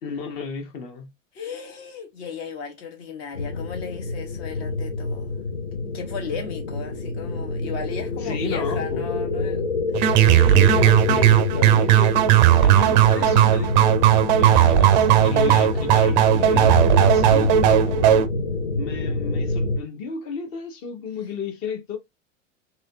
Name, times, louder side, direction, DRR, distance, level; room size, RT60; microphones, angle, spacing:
voice 1, 0.0-1.1 8.2-9.0 10.3-12.2 12.5-14.0 14.3-18.3 18.8-22.0, left 5 dB, 35° left, 0.9 m, -32 dB
voice 2, 1.3-5.4 5.9-10.4, left 6 dB, 50° left, 1.3 m, -36 dB
sound 1, 3.3-19.8, left 3 dB, 65° left, 1.0 m, -26 dB
sound 2, 9.9-18.3, right 12 dB, 40° right, 0.4 m, -16 dB
3.1 x 2.9 x 2.5 m
figure-of-eight pair, 90°, 38 cm